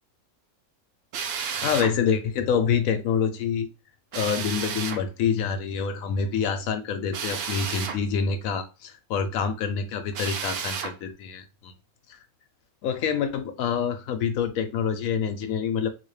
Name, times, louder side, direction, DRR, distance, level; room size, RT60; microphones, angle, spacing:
Drill, 1.1-1.9 4.1-5.0 7.1-8.0 10.1-10.9, right 6 dB, 85° right, 0.5 m, -31 dB
voice 1, 1.6-3.7 4.1-11.7 12.8-15.9, left 7 dB, 70° left, 0.9 m, -26 dB
3.3 x 2.7 x 3.2 m
omnidirectional pair, 1.6 m